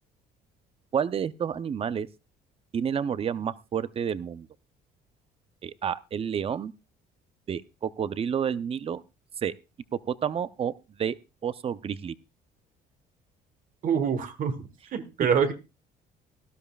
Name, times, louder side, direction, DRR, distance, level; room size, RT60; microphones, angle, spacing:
voice 1, 0.9-2.1 2.7-4.5 5.6-6.7 7.5-9.0 9.4-9.5 9.9-11.2 11.4-12.2, right 8 dB, 35° right, 15 dB, 0.6 m, -30 dB
voice 2, 13.8-15.5, right 7 dB, 50° right, 9 dB, 1.5 m, -26 dB
18.0 x 12.0 x 2.4 m, 0.27 s
cardioid pair, 110°, 17 cm